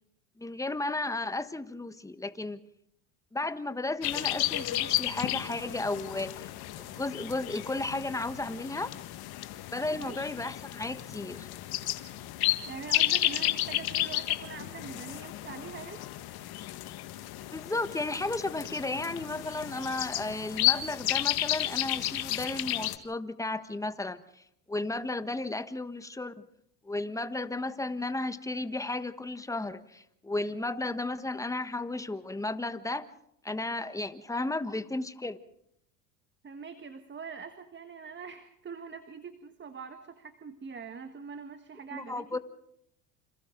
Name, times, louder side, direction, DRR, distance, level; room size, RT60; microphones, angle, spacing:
voice 1, 0.4-2.6 3.3-6.5 6.8-8.9 9.7-11.5 17.5-26.3 26.8-33.1 33.4-35.4 41.9-42.4, left 2 dB, 5° left, 11 dB, 1.4 m, -34 dB
sound 1, 4.0-23.0, left 15 dB, 50° left, 1.8 m, -32 dB
voice 2, 12.7-16.0 36.4-42.4, right 6 dB, 25° right, 8 dB, 1.6 m, -43 dB
28.5 x 27.5 x 3.9 m, 0.74 s
hypercardioid pair, 90°, 48 cm